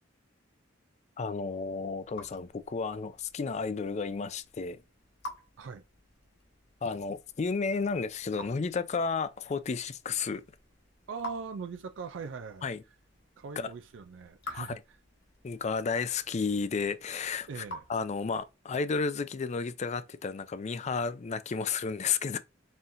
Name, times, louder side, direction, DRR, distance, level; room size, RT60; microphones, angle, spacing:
voice 1, 1.2-4.8 6.8-10.4 12.6-12.8 13.6-13.7 14.5-14.8 15.4-17.6 17.9-22.4, left 5 dB, 35° left, 0.4 m, -32 dB
Raindrop / Drip, 1.4-18.6, left 1 dB, 60° left, 1.4 m, -50 dB
voice 2, 11.1-12.7 13.4-14.8 17.5-17.8, right 5 dB, 70° right, 0.4 m, -40 dB
4.3 x 3.6 x 2.6 m
head